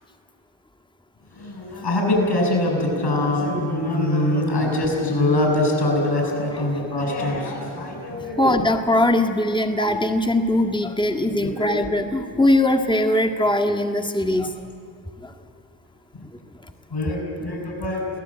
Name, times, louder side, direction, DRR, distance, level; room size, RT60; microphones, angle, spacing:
voice 1, 1.3-8.7 11.2-11.8 16.9-18.1, left 1 dB, 60° left, 0 dB, 7.8 m, -23 dB
voice 2, 8.4-14.5 15.2-15.3, left 1 dB, 10° left, 3 dB, 1.8 m, -21 dB
24.5 x 17.0 x 9.1 m, 2.4 s
cardioid pair, 50°, 47 cm